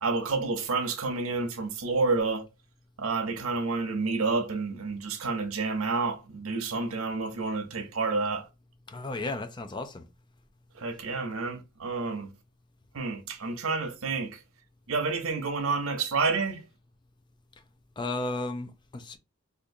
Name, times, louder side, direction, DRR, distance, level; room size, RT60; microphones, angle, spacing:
voice 1, 0.0-2.5 3.0-8.5 10.7-12.3 12.9-14.4 14.9-16.6, right 4 dB, 90° right, 0.8 m, -29 dB
voice 2, 8.9-10.0 18.0-19.2, left 2 dB, 20° left, 0.4 m, -34 dB
3.6 x 2.5 x 2.6 m
head